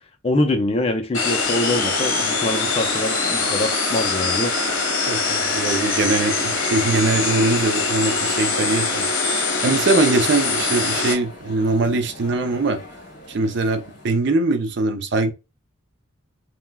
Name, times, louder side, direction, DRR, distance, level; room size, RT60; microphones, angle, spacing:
voice 1, 0.2-4.5, left 1 dB, 25° left, 0.4 m, -24 dB
sound 1, 1.1-11.1, left 4 dB, 65° left, 0.9 m, -23 dB
sound 2, 1.4-14.2, left 1 dB, 45° left, 1.4 m, -41 dB
voice 2, 5.1-12.8 13.3-15.3, right 3 dB, 50° right, 0.4 m, -22 dB
3.3 x 2.1 x 2.2 m
head